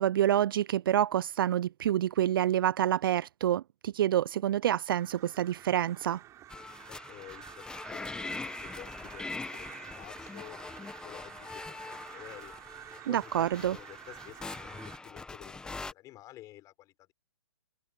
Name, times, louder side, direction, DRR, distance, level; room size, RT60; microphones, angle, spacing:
voice 1, 0.0-6.2 13.1-13.8, right 11 dB, 50° right, 0.5 m, -27 dB
Crow, 4.9-15.0, right 13 dB, 20° right, 7.8 m, -50 dB
sound 1, 6.5-15.9, left 3 dB, 5° left, 1.3 m, -43 dB
voice 2, 6.9-12.5 13.1-17.1, left 15 dB, 25° left, 5.4 m, -51 dB
hypercardioid pair, 140°, 15 cm